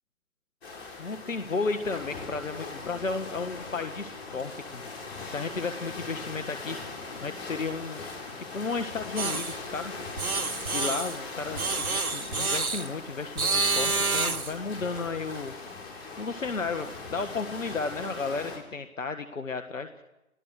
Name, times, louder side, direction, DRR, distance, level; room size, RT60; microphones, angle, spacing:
sound 1, 0.6-18.6, left 3 dB, 45° left, 7.4 m, -40 dB
voice 1, 1.0-4.9 5.3-8.0 8.4-9.9 10.7-15.5 16.2-20.0, left 4 dB, 65° left, 8 dB, 1.7 m, -33 dB
sound 2, 9.2-9.6 10.2-11.2 11.6-12.9 13.4-14.6, right 3 dB, 90° right, 1.2 m, -28 dB
29.5 x 17.5 x 6.5 m, 0.96 s
figure-of-eight pair, 145°, 42 cm